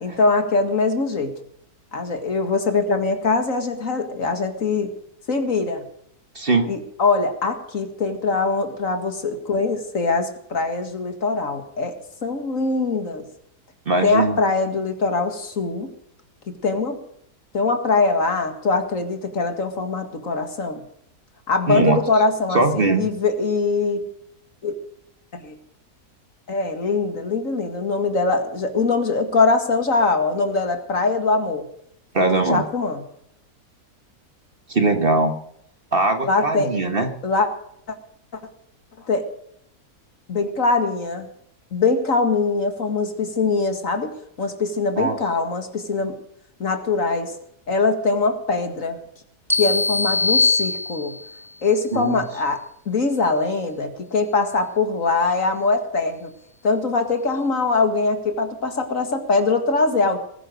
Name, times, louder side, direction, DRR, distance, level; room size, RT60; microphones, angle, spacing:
voice 1, 0.0-1.3 1.9-4.9 5.3-5.9 6.7-13.3 14.0-15.9 16.6-17.0 17.5-20.8 21.5-24.0 24.6-24.7 25.3-25.6 26.5-31.6 32.3-33.0 36.3-36.7 37.2-37.5 37.9-38.0 39.0-39.3 40.3-41.3 41.7-46.2 46.6-47.4 47.7-49.0 49.5-51.2 51.6-56.3 56.6-60.2, left 3 dB, 55° left, 7 dB, 2.3 m, -22 dB
voice 2, 6.3-6.7 13.9-14.4 21.7-22.0 22.5-23.0 32.1-32.6 34.7-35.3 35.9-37.1 45.0-45.1 51.9-52.2, right 3 dB, 35° right, 6 dB, 1.6 m, -20 dB
sound 1, 49.5-51.4, left 3 dB, ahead, 0.8 m, -21 dB
20.0 x 10.0 x 6.6 m, 0.71 s
omnidirectional pair, 1.7 m